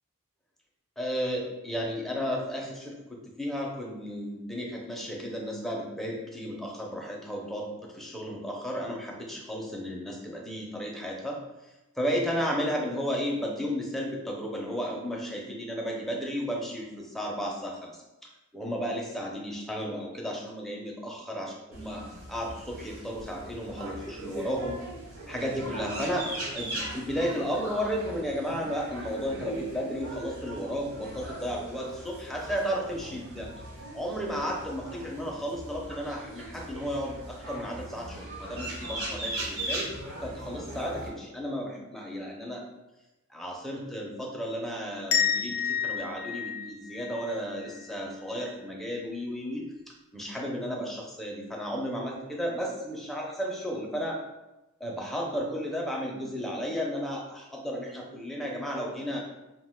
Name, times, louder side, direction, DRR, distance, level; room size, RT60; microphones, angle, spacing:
voice 1, 1.0-22.0 22.3-24.9 25.3-33.5 33.9-39.9 40.2-42.6 43.3-49.7 50.1-54.2 54.8-59.2, equal, ahead, -2 dB, 0.4 m, -33 dB
sound 1, 21.7-41.1, right 1 dB, 70° right, 1.1 m, -39 dB
sound 2, 45.1-47.9, left 8 dB, 65° left, 0.4 m, -30 dB
2.4 x 2.2 x 3.4 m, 1.0 s
head